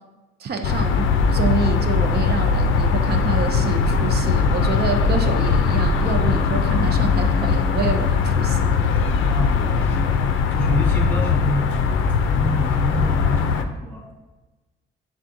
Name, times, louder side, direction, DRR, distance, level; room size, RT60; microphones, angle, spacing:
voice 1, 0.4-8.7, right 5 dB, 55° right, 6 dB, 0.5 m, -27 dB
sound 1, 0.6-13.6, left 5 dB, 80° left, 0.4 m, -20 dB
voice 2, 9.3-11.8 12.4-14.1, left 1 dB, 10° left, -2 dB, 0.7 m, -28 dB
5.6 x 3.6 x 2.6 m, 1.2 s
cardioid pair, 90°, 20 cm